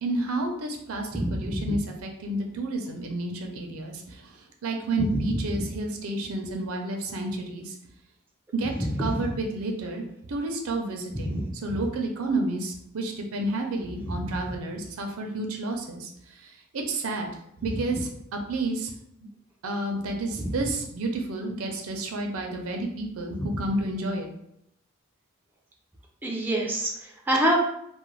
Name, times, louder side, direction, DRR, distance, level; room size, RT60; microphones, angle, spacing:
voice 1, 0.0-4.3 4.6-7.7 8.5-8.7 9.0-16.1 16.4-17.3 17.6-18.9 19.6-24.3, right 2 dB, 85° right, 2 dB, 0.5 m, -30 dB
voice 2, 1.1-1.7 8.8-9.2 11.1-11.8 23.3-23.5 26.2-27.6, right 1 dB, 10° right, -2 dB, 0.3 m, -27 dB
2.3 x 2.1 x 3.1 m, 0.76 s
head